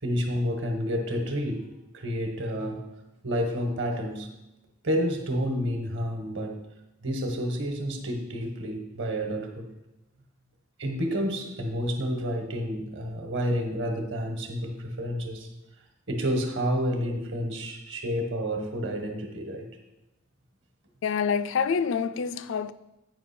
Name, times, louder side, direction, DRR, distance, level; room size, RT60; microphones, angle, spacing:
voice 1, 0.0-1.6 1.9-2.9 3.2-4.3 4.8-6.6 7.0-9.7 10.8-15.5 16.1-19.7, equal, 60° right, 1.3 m, -29 dB
voice 2, 21.0-22.7, left 6 dB, 60° left, 0.4 m, -27 dB
8.6 x 5.6 x 4.3 m
head